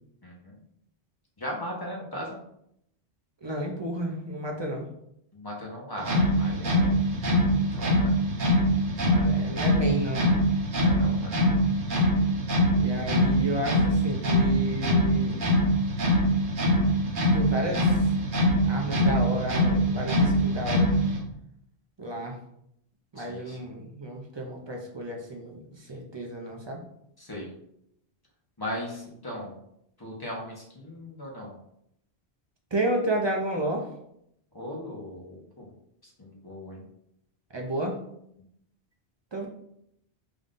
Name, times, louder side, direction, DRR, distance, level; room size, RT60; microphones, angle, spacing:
voice 1, 0.2-0.5 1.4-2.4 5.3-6.9 7.7-8.1 10.8-11.4 23.2-23.7 27.2-27.5 28.6-29.6 30.0-31.6 34.5-35.7 36.0-36.8, equal, 20° left, -3 dB, 0.9 m, -38 dB
voice 2, 3.4-4.9 9.1-10.3 12.8-15.4 17.3-18.1 18.7-20.9 22.0-22.4 23.1-26.8 32.7-33.9 37.5-38.0 39.3-39.5, right 1 dB, 35° right, 0 dB, 0.5 m, -32 dB
sound 1, 6.0-21.2, equal, 55° right, 0.9 m, -23 dB
3.8 x 2.5 x 3.6 m, 0.75 s
omnidirectional pair, 1.1 m